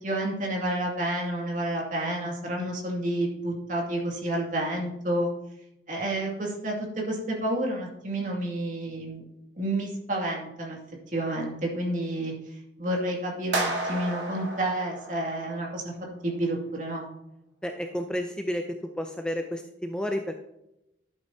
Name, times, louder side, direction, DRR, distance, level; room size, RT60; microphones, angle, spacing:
voice 1, 0.0-5.3 5.9-9.2 9.6-10.8 11.1-12.3 12.8-15.9 16.2-17.1, right 1 dB, 45° right, -1 dB, 2.4 m, -30 dB
sound 1, 13.5-15.8, right 2 dB, 80° right, 2.3 m, -32 dB
voice 2, 17.6-18.6 19.0-20.3, equal, 5° left, 4 dB, 0.5 m, -31 dB
11.5 x 8.3 x 2.8 m, 0.85 s
head